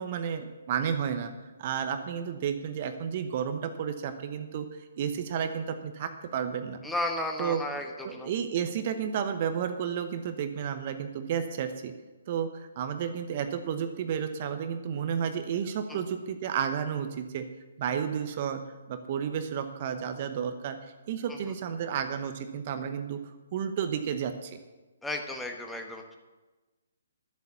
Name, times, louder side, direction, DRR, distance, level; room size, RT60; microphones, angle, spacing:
voice 1, 0.0-1.3 1.6-4.6 5.0-6.8 7.4-7.6 8.0-11.9 12.3-17.4 17.8-18.6 18.9-20.8 21.1-23.2 23.5-24.6, right 8 dB, 40° right, 8 dB, 1.0 m, -32 dB
voice 2, 6.8-8.3 15.9-16.0 21.3-21.4 25.0-26.2, left 1 dB, 5° left, 3 dB, 1.2 m, -34 dB
11.0 x 8.1 x 6.9 m, 1.2 s
figure-of-eight pair, 135°, 0 cm